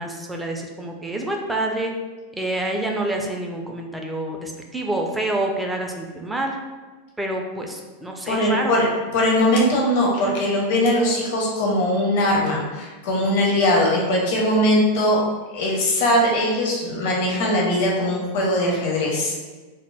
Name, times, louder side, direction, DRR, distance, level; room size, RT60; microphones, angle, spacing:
voice 1, 0.0-1.9 2.3-6.6 7.2-8.8, right 1 dB, 5° right, 1 dB, 0.3 m, -27 dB
voice 2, 8.2-8.9 9.1-15.2 15.5-19.3, left 1 dB, 50° left, -2 dB, 0.6 m, -20 dB
2.1 x 2.1 x 3.2 m, 1.3 s
figure-of-eight pair, 90°, 0 cm